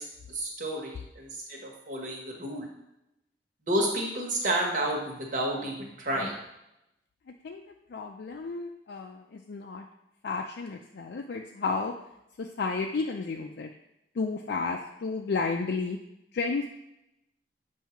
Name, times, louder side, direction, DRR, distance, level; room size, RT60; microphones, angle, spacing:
voice 1, 0.0-2.7 3.7-6.3, right 1 dB, 50° right, -1 dB, 1.5 m, -31 dB
voice 2, 7.9-9.9 10.2-11.9 12.4-13.7 14.1-16.0 16.3-16.7, left 4 dB, 65° left, 2 dB, 0.4 m, -32 dB
7.1 x 2.8 x 5.7 m, 0.87 s
head